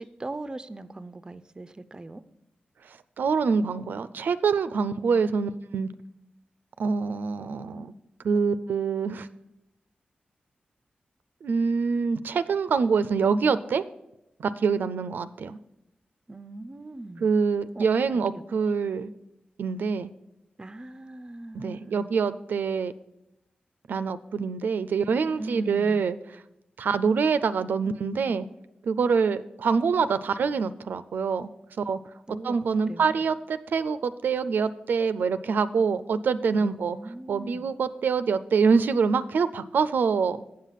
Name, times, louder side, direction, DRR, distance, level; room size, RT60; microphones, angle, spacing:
voice 1, 0.0-2.2 16.3-17.3 17.8-17.9 18.1-18.4 20.6-22.1 25.4-26.0 32.3-32.6 32.9-33.2 36.6-37.7, right 2 dB, 25° right, 0.4 m, -40 dB
voice 2, 2.9-5.9 6.8-7.9 8.2-9.3 11.4-13.8 14.4-15.6 17.2-19.1 19.6-20.1 21.5-22.9 23.9-26.2 26.8-28.5 28.8-31.5 31.8-32.0 32.3-37.0 37.3-40.5, right 5 dB, 90° right, 0.4 m, -25 dB
7.5 x 7.4 x 5.7 m
wide cardioid pair, 100°, 3 cm